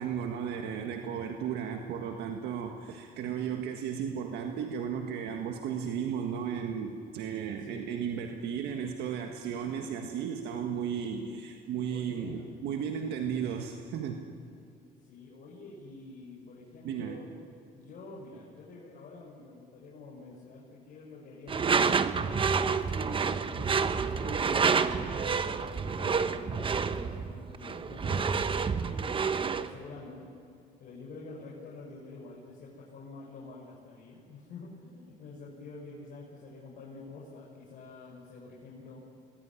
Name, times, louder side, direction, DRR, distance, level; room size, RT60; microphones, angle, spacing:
voice 1, 0.0-14.2 16.8-17.2, right 7 dB, 80° right, 4 dB, 1.7 m, -34 dB
voice 2, 7.6-8.1 11.9-12.4 15.0-17.3 17.7-22.5 22.8-29.1 29.5-30.3 30.8-39.0, left 3 dB, 60° left, -5 dB, 6.2 m, -48 dB
Door / Screech, 21.5-29.7, right 5 dB, 30° right, 1.0 m, -28 dB
26.0 x 20.5 x 9.9 m, 2.5 s
cardioid pair, 110°, 17 cm